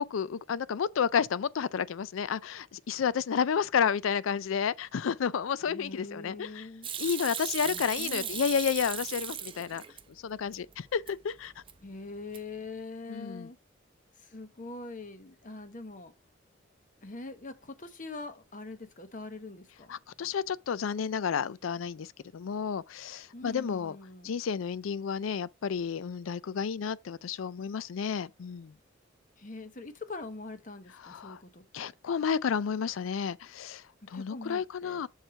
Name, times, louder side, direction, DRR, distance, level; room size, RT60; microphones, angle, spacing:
voice 1, 0.0-6.7 7.0-9.8 10.2-11.5 13.1-13.5 19.9-24.0 24.2-28.7 31.0-31.4 31.7-35.1, left 7 dB, 90° left, 0.4 m, -31 dB
voice 2, 5.7-6.9 7.6-8.4 11.8-13.6 14.2-16.1 17.0-19.9 23.3-24.3 29.4-31.9 34.1-35.1, left 3 dB, 40° left, 1.0 m, -43 dB
Hands / Sink (filling or washing), 6.8-10.0 10.4-11.1 11.5-11.9 12.2-12.7, right 9 dB, 25° right, 0.6 m, -37 dB
6.5 x 4.5 x 4.4 m
head